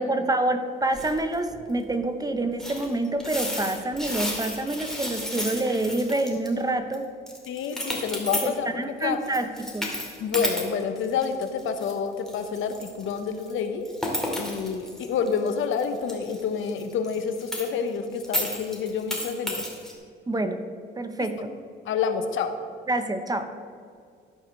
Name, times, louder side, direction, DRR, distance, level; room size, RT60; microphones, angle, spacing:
voice 1, 0.0-7.1 8.4-9.9 20.3-20.6 21.0-21.5 22.9-23.5, right 2 dB, 20° right, 8 dB, 0.8 m, -27 dB
sound 1, 0.9-1.6 1.9-2.0 2.6-6.6 6.9-7.0 7.3-8.6 9.2-11.9 12.3-17.9 18.2-19.9, left 1 dB, ahead, 2.3 m, -32 dB
voice 2, 7.5-8.7 9.0-9.2 10.2-13.9 14.3-19.6 21.2-21.3 21.8-22.5, left 6 dB, 80° left, 8 dB, 1.0 m, -28 dB
13.0 x 5.0 x 6.3 m, 2.2 s
cardioid pair, 90°, 20 cm